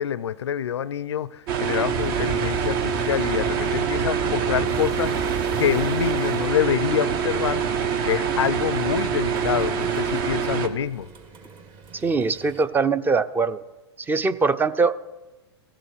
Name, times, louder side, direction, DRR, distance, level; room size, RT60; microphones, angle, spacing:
voice 1, 0.0-5.2 5.6-7.6 8.1-11.1, left 9 dB, 85° left, 0.4 m, -26 dB
sound 1, 1.5-10.7, right 7 dB, 55° right, 1.1 m, -25 dB
sound 2, 1.9-7.0, right 4 dB, 75° right, 3.8 m, -35 dB
sound 3, 4.7-12.6, right 6 dB, 35° right, 1.5 m, -46 dB
voice 2, 11.9-13.6 14.1-15.0, right 4 dB, 15° right, 0.4 m, -22 dB
15.0 x 7.7 x 6.5 m
hypercardioid pair, 110°, 14 cm